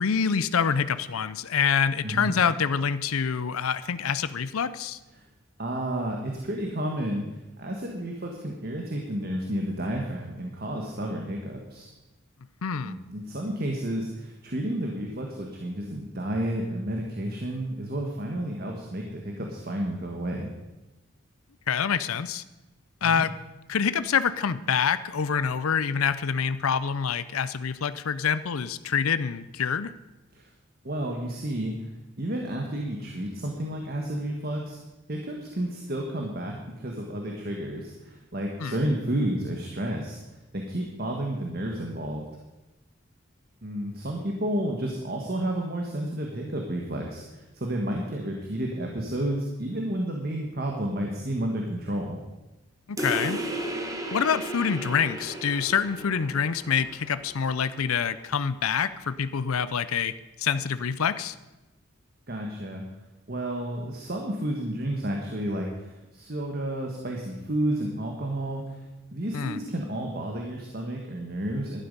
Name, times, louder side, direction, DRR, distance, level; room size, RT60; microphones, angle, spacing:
voice 1, 0.0-5.0 12.6-12.9 21.7-22.4 23.0-23.4 23.7-29.9 38.6-38.8 52.9-53.4 54.1-60.1 60.4-61.3 69.3-69.6, left 6 dB, 90° left, 14 dB, 0.6 m, -26 dB
voice 2, 2.0-2.3 5.1-5.2 5.6-11.9 12.8-20.5 23.0-23.2 30.3-30.5 30.8-31.7 32.2-34.8 35.1-40.2 40.5-42.2 43.6-52.2 62.3-62.9 63.3-68.8 69.1-71.8, right 1 dB, 45° right, 1 dB, 1.4 m, -31 dB
sound 1, 53.0-58.0, right 1 dB, 15° right, 1.2 m, -35 dB
11.5 x 11.5 x 5.4 m, 1.0 s
head